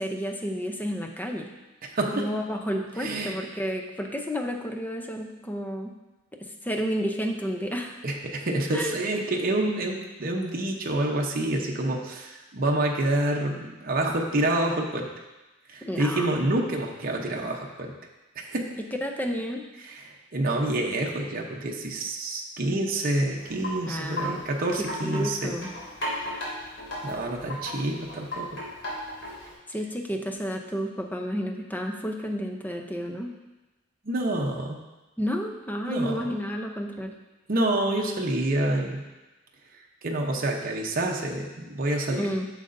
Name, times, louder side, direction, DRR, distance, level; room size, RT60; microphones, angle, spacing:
voice 1, 0.0-1.5 2.1-5.9 6.4-8.0 8.7-9.0 15.8-16.3 19.0-19.6 23.9-24.4 24.8-25.7 29.7-33.3 35.2-37.2 42.1-42.5, equal, 10° left, 3 dB, 0.6 m, -31 dB
voice 2, 1.8-2.3 3.0-3.4 8.0-15.1 15.7-17.9 18.4-18.7 19.8-25.6 26.1-26.4 27.0-28.6 34.0-34.8 35.9-36.3 37.5-39.0 40.0-42.3, right 1 dB, 45° right, 0 dB, 0.8 m, -28 dB
Wind chime, 23.4-29.6, equal, 65° left, 2.7 m, -36 dB
9.0 x 6.6 x 2.6 m, 1.1 s
head